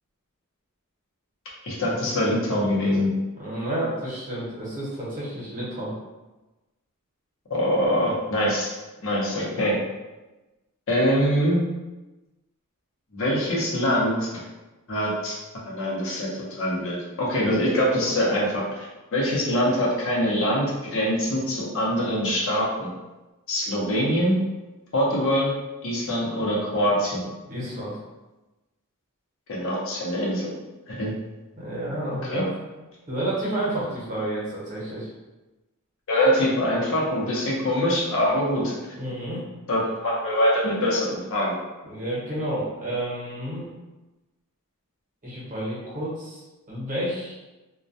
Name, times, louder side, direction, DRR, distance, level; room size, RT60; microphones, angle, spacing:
voice 1, 1.6-3.1 7.5-8.7 9.0-9.8 10.9-11.6 13.1-14.3 14.9-15.3 15.7-16.3 16.6-22.9 23.5-24.4 24.9-25.5 25.8-27.2 29.5-30.5 30.9-31.1 32.3-32.4 36.1-38.7 39.7-41.6, equal, 65° left, -5 dB, 0.7 m, -24 dB
voice 2, 3.4-5.9 27.4-28.0 31.6-32.5 33.1-35.1 39.0-39.4 41.8-43.7 45.2-47.3, right 1 dB, 35° right, -7 dB, 0.9 m, -30 dB
2.2 x 2.1 x 2.6 m, 1.1 s
head